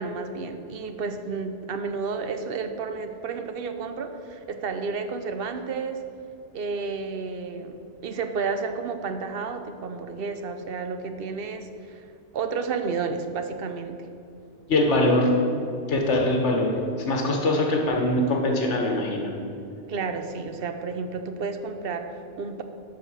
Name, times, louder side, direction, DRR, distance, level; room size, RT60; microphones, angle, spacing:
voice 1, 0.0-6.0 6.5-12.1 12.3-14.1 19.9-22.6, right 4 dB, 60° right, 8 dB, 0.8 m, -31 dB
voice 2, 14.7-15.3 15.9-16.8 17.0-19.3, left 1 dB, 80° left, 1 dB, 1.6 m, -22 dB
11.5 x 4.6 x 6.3 m, 2.6 s
omnidirectional pair, 1.2 m